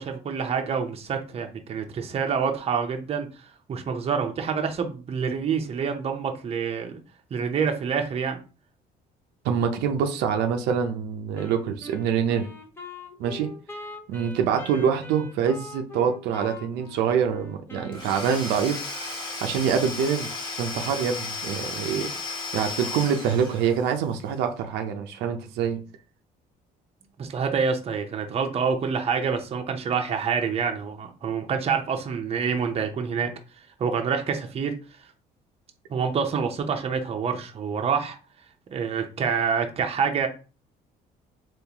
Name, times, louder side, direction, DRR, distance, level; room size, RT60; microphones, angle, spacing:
voice 1, 0.0-3.3 3.7-7.0 7.3-8.4 21.9-22.1 27.2-33.3 33.8-34.7 35.9-38.2 38.7-40.3, right 6 dB, 35° right, 0.6 m, -27 dB
voice 2, 9.4-12.5 13.2-13.5 14.1-18.9 19.4-20.3 20.6-22.1 22.5-25.8, right 7 dB, 90° right, 0.5 m, -25 dB
Wind instrument woodwind instrument, 11.4-18.8, left 2 dB, 15° left, 0.7 m, -43 dB
Domestic sounds home sounds / Tools, 17.9-24.0, left 3 dB, 30° left, 1.2 m, -34 dB
3.7 x 2.5 x 2.9 m
cardioid pair, 110°, 17 cm